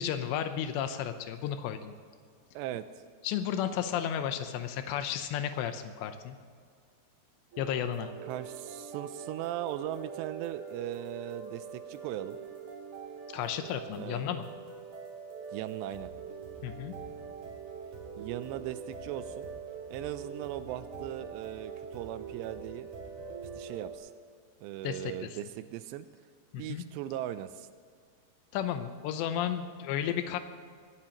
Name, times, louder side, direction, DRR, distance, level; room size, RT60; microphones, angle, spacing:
voice 1, 0.0-1.9 3.2-6.4 7.6-8.1 13.3-14.5 16.6-16.9 24.8-25.3 26.5-26.8 28.5-30.4, left 9 dB, 90° left, 8 dB, 3.0 m, -33 dB
voice 2, 2.5-2.9 8.2-12.4 13.9-14.3 15.5-16.1 18.2-19.5 19.9-22.9 23.6-24.1 24.6-26.1 26.6-27.7, right 12 dB, 85° right, 12 dB, 2.7 m, -38 dB
sound 1, 7.5-23.9, right 6 dB, 55° right, 4.9 m, -43 dB
22.0 x 17.5 x 3.0 m, 2.1 s
omnidirectional pair, 4.9 m